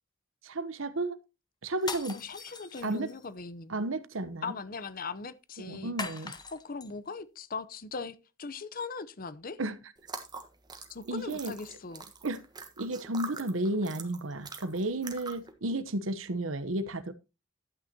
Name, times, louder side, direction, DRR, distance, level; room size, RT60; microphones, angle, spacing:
voice 1, 0.4-1.2 1.6-2.2 2.8-3.1 3.7-4.5 5.6-6.3 9.6-9.8 11.1-11.5 12.2-12.4 12.8-17.1, right 2 dB, 85° right, 1.0 m, -32 dB
sound 1, 1.8-3.3 6.0-6.9, left 4 dB, 20° left, 1.1 m, -40 dB
voice 2, 2.1-3.8 4.4-5.9 6.2-9.6 10.9-12.1, left 4 dB, 45° left, 0.8 m, -40 dB
sound 2, 10.0-15.5, right 4 dB, 20° right, 1.4 m, -44 dB
12.0 x 8.9 x 2.9 m
head